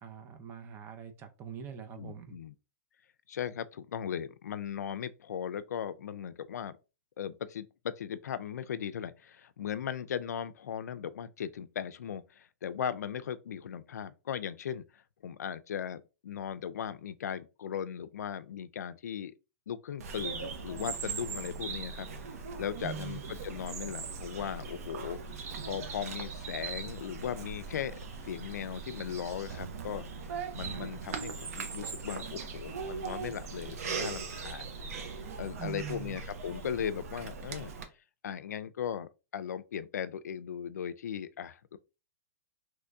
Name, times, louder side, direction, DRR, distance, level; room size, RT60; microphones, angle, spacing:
voice 1, 0.0-2.3 22.8-23.2 35.6-36.2, right 9 dB, 25° right, 0.5 m, -42 dB
voice 2, 1.9-2.5 3.3-6.8 7.2-19.4 19.7-22.1 22.6-25.2 25.7-30.1 30.5-35.0 35.4-37.7 38.2-41.8, left 8 dB, 85° left, 0.4 m, -38 dB
Bird vocalization bird call bird song, 20.0-37.8, right 5 dB, 65° right, 0.8 m, -40 dB
3.0 x 2.6 x 3.4 m
hypercardioid pair, 145°, 9 cm